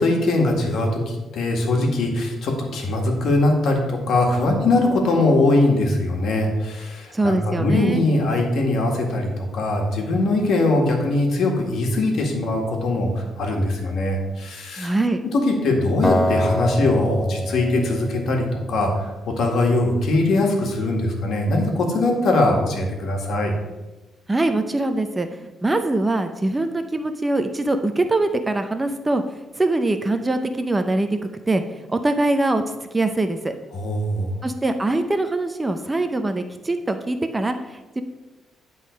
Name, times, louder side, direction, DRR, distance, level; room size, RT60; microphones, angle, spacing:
voice 1, 0.0-14.9 15.3-23.5 33.7-34.3, left 2 dB, 70° left, 1 dB, 1.8 m, -21 dB
voice 2, 7.1-8.0 14.8-15.2 24.3-29.2 29.6-31.2 31.5-32.6 32.9-33.5 34.4-38.0, right 2 dB, 20° right, 7 dB, 0.6 m, -23 dB
Acoustic guitar, 16.0-19.2, equal, 20° left, 0.9 m, -25 dB
10.0 x 3.9 x 5.2 m, 1.1 s
cardioid pair, 90°, 0 cm